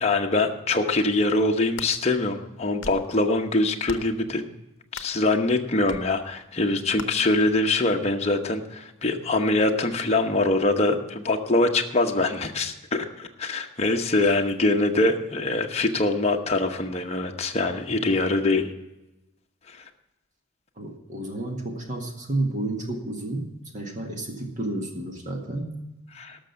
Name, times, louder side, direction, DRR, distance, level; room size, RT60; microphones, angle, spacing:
voice 1, 0.0-4.4 4.9-18.7 19.7-19.8 26.1-26.4, left 2 dB, 30° left, 3 dB, 1.0 m, -23 dB
sound 1, 1.5-1.9 2.6-3.1 3.8-4.2 4.9-5.2 5.9-6.1 7.0-7.1, left 4 dB, 60° left, 0.9 m, -38 dB
voice 2, 20.8-25.7, right 2 dB, 35° right, 3 dB, 1.8 m, -31 dB
13.0 x 6.3 x 7.9 m, 0.97 s
head